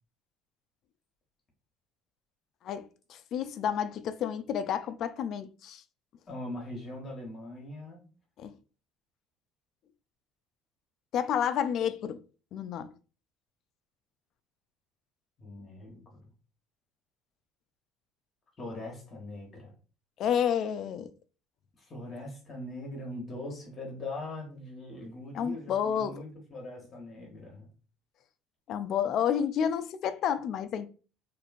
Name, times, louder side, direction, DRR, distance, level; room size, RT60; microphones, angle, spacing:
voice 1, 2.6-5.8 8.4-8.5 11.1-12.2 12.5-12.9 20.2-21.1 25.3-26.2 28.7-30.9, left 8 dB, 55° left, 0.3 m, -30 dB
voice 2, 6.3-8.0 15.4-16.2 18.6-19.7 21.8-27.7, left 1 dB, 30° left, 1.0 m, -41 dB
3.0 x 2.5 x 2.4 m
cardioid pair, 120°, 0 cm